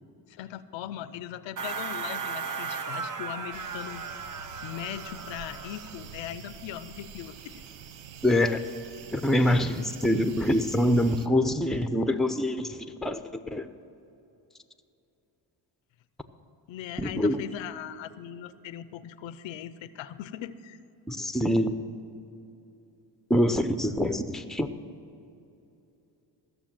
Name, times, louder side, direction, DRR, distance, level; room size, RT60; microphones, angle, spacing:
voice 1, 0.3-4.0 4.6-7.5 16.7-20.8, left 11 dB, 90° left, 14 dB, 0.6 m, -39 dB
sound 1, 1.6-6.1, right 5 dB, 45° right, 0.9 m, -36 dB
sound 2, 3.5-11.3, right 8 dB, 80° right, 0.8 m, -46 dB
voice 2, 8.2-8.6 9.1-13.2 13.5-13.7 17.0-17.4 21.1-21.8 23.3-24.7, left 1 dB, ahead, 9 dB, 0.6 m, -25 dB
15.0 x 6.8 x 7.5 m, 2.8 s
cardioid pair, 85°, 44 cm